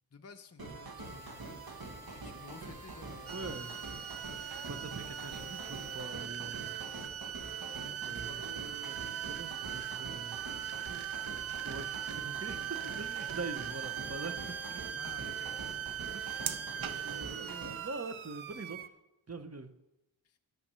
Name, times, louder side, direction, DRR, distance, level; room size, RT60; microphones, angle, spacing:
voice 1, 0.1-1.6 2.1-4.0 5.7-5.9 8.1-8.8 9.7-9.8 12.8-12.9 14.9-15.6 16.6-17.0 20.2-20.4, left 5 dB, 35° left, 7 dB, 0.5 m, -53 dB
sound 1, 0.6-17.9, right 3 dB, 50° right, 1.1 m, -45 dB
sound 2, 1.0-6.1, left 1 dB, 15° left, 2.5 m, -59 dB
voice 2, 3.3-3.7 4.7-6.7 7.8-8.4 8.8-10.4 11.6-14.8 16.1-18.9 19.3-19.7, right 3 dB, 35° right, 10 dB, 0.7 m, -44 dB
sound 3, 3.3-18.9, right 10 dB, 85° right, 0.6 m, -40 dB
10.5 x 5.9 x 6.7 m, 0.99 s
wide cardioid pair, 40°, 46 cm